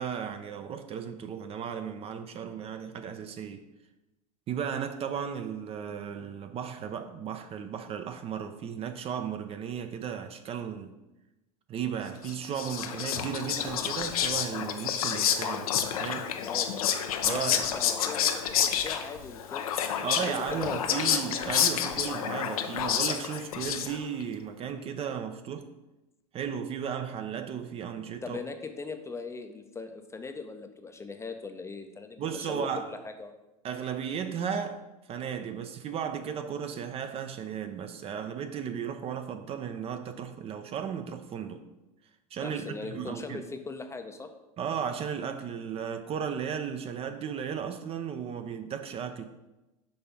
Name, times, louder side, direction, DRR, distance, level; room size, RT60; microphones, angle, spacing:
voice 1, 0.0-3.6 4.5-10.9 11.7-16.3 17.2-17.7 20.0-25.7 26.3-28.4 32.2-32.9 33.6-41.7 42.3-43.4 44.6-49.2, right 7 dB, 30° right, 0.5 m, -35 dB
Whispering, 12.2-24.2, left 9 dB, 75° left, 0.6 m, -29 dB
voice 2, 16.4-16.9 17.3-21.0 28.2-33.4 42.4-44.3, left 4 dB, 15° left, 0.5 m, -40 dB
5.4 x 3.3 x 5.6 m
hypercardioid pair, 90°, 19 cm